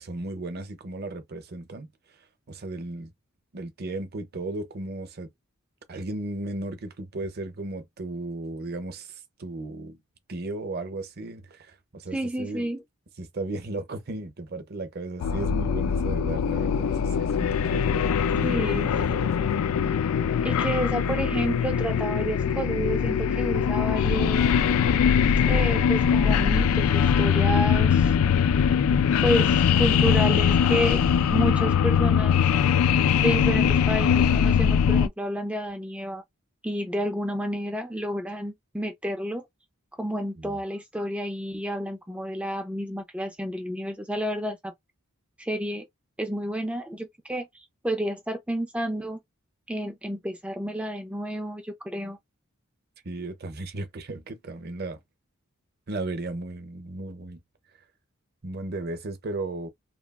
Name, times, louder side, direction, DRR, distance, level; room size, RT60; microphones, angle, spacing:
voice 1, 0.0-1.9 2.5-3.1 3.5-5.3 5.9-9.1 9.4-9.9 10.3-12.7 13.2-18.0 18.3-19.5 40.4-40.6 53.0-55.0 55.9-57.4 58.4-59.7, right 2 dB, 45° right, 0.6 m, -35 dB
voice 2, 12.1-12.8 18.4-18.9 20.4-24.4 25.4-28.1 29.2-31.0 31.3-32.4 33.2-36.2 36.6-39.5 40.0-44.7 45.4-45.9 46.2-49.2 49.7-52.2, equal, 5° right, 0.3 m, -30 dB
sound 1, 15.2-35.1, left 7 dB, 75° left, 0.3 m, -22 dB
2.9 x 2.3 x 2.3 m
head